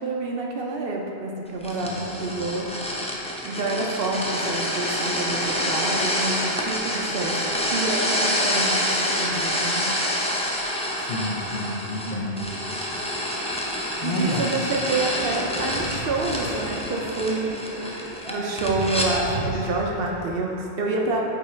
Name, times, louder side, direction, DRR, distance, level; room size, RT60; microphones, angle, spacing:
voice 1, 0.0-2.7 3.4-9.9 12.1-12.4 14.0-17.5 17.8-21.2, right 3 dB, 60° right, -1 dB, 0.8 m, -28 dB
sound 1, 1.6-19.1, left 1 dB, 10° left, 0.3 m, -27 dB
voice 2, 1.7-2.4 10.9-12.5 14.0-14.5, left 1 dB, 55° left, -3 dB, 0.8 m, -30 dB
sound 2, 15.2-20.2, right 1 dB, 70° left, 1.4 m, -35 dB
5.4 x 4.8 x 4.2 m, 2.8 s
omnidirectional pair, 1.1 m